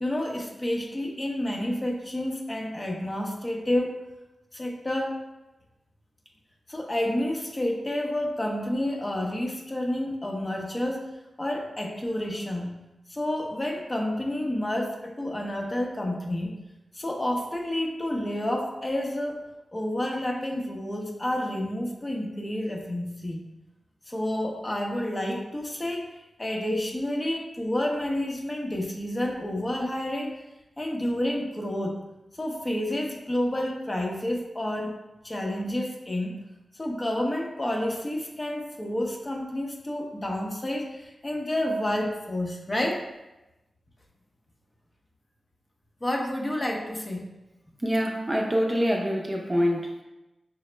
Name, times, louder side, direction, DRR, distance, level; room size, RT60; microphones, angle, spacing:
voice 1, 0.0-4.0 4.5-5.2 6.7-11.1 11.4-12.8 13.1-16.6 16.9-23.4 24.1-26.1 26.4-30.4 30.8-32.0 32.3-34.9 35.2-36.4 36.7-43.0 46.0-47.3, left 1 dB, 30° left, 1 dB, 0.7 m, -29 dB
voice 2, 47.8-50.0, equal, 25° right, 1 dB, 0.6 m, -25 dB
4.9 x 2.0 x 3.2 m, 1.0 s
cardioid pair, 45°, 0 cm